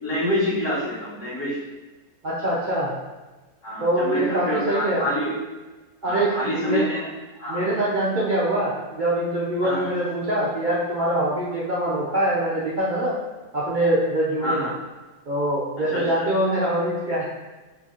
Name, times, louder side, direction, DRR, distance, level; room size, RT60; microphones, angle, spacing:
voice 1, 0.0-1.6 3.6-5.3 6.0-7.1 7.4-7.7 9.6-9.9 14.4-14.7 15.9-16.3, left 1 dB, 85° left, -10 dB, 1.5 m, -27 dB
voice 2, 2.2-2.9 3.8-5.0 6.0-6.9 7.5-13.2 13.5-14.7 15.3-17.2, right 1 dB, 70° right, -8 dB, 0.4 m, -24 dB
4.1 x 3.2 x 2.4 m, 1.2 s
omnidirectional pair, 1.6 m